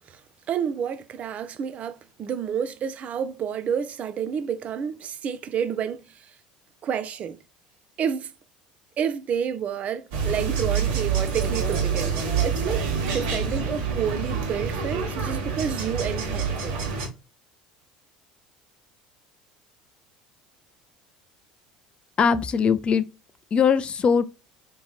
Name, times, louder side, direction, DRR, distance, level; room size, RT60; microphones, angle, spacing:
voice 1, 0.5-6.3 6.8-7.4 8.0-8.3 9.0-16.9, right 7 dB, 40° right, 0.5 m, -30 dB
sound 1, 10.1-17.1, right 6 dB, 60° right, 1.1 m, -27 dB
voice 2, 22.2-23.0 23.5-24.2, left 6 dB, 30° left, 0.3 m, -20 dB
3.8 x 2.8 x 2.2 m
figure-of-eight pair, 65°, 4 cm